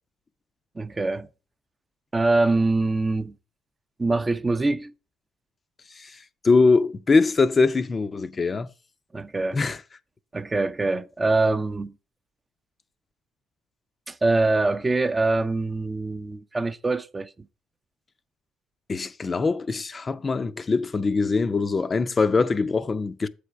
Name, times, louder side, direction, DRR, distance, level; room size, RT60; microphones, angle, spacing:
voice 1, 0.8-1.3 2.1-3.3 4.0-4.9 9.1-9.6 10.3-11.9 14.1-17.3, right 2 dB, 25° right, 0.5 m, -24 dB
voice 2, 6.4-8.7 9.5-9.8 18.9-23.3, left 4 dB, 35° left, 0.4 m, -22 dB
7.6 x 3.4 x 5.7 m
supercardioid pair, 65°, 0 cm